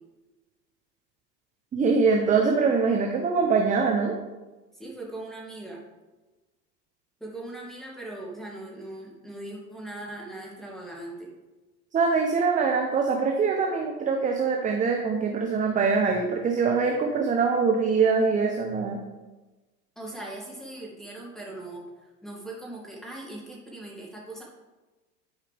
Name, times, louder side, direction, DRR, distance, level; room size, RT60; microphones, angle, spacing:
voice 1, 1.7-4.1 11.9-19.0, right 5 dB, 15° right, 2 dB, 0.7 m, -23 dB
voice 2, 4.7-5.8 7.2-11.3 20.0-24.4, right 2 dB, ahead, -3 dB, 2.4 m, -40 dB
11.0 x 4.8 x 3.4 m, 1.2 s
hypercardioid pair, 105°, 50 cm